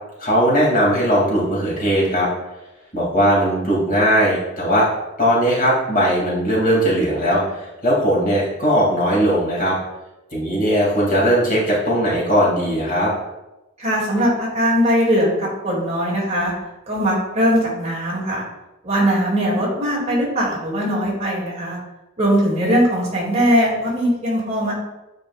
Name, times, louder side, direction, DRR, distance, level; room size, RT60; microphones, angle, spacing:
voice 1, 0.2-2.3 2.9-4.9 5.2-9.7 10.3-13.1, equal, 45° left, -5 dB, 2.4 m, -18 dB
voice 2, 13.8-16.5 16.9-18.4 18.8-21.8 22.2-24.7, equal, 35° right, -5 dB, 2.2 m, -20 dB
9.6 x 4.8 x 2.3 m, 0.98 s
head